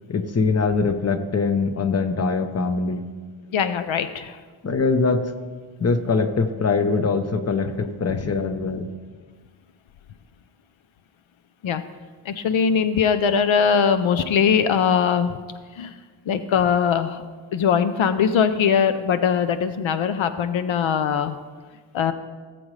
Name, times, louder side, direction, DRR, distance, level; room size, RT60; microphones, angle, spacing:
voice 1, 0.1-3.0 4.6-5.3 5.8-8.9, left 4 dB, 35° left, 9 dB, 0.7 m, -22 dB
voice 2, 3.5-4.4 8.1-8.3 11.6-11.8 12.3-15.4 15.8-15.9 16.3-17.2 17.5-21.4 21.9-22.1, left 7 dB, 80° left, 10 dB, 0.6 m, -21 dB
18.0 x 7.7 x 3.2 m, 1.5 s
wide cardioid pair, 110°, 46 cm